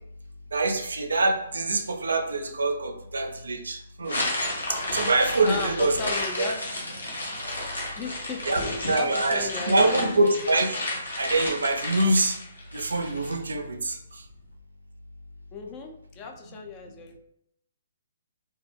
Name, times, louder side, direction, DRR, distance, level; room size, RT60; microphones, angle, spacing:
voice 1, 0.5-4.2 4.7-6.1 6.4-6.5 7.1-7.2 8.5-10.9 11.2-12.4 12.7-14.2, right 2 dB, 75° right, 5 dB, 0.4 m, -25 dB
sound 1, 4.0-13.3, left 1 dB, 90° left, 0.8 m, -32 dB
voice 2, 5.4-6.5 7.8-8.4 8.8-10.3 15.5-17.2, left 5 dB, 25° left, 3 dB, 0.3 m, -36 dB
2.2 x 2.0 x 3.3 m, 0.77 s
figure-of-eight pair, 130°, 0 cm